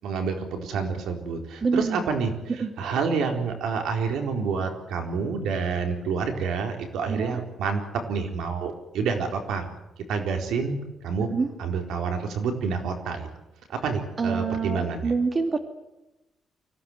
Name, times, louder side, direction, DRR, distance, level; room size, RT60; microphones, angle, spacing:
voice 1, 0.0-2.3 2.8-7.8 8.1-9.7 10.1-11.3 11.6-13.3 13.7-15.1, right 5 dB, 90° right, 4 dB, 4.3 m, -28 dB
voice 2, 1.6-2.0 2.6-2.7 7.1-7.4 11.3-11.5 14.2-15.6, right 4 dB, 35° right, 7 dB, 2.4 m, -26 dB
24.5 x 17.0 x 9.3 m, 0.99 s
cardioid pair, 120°, 0 cm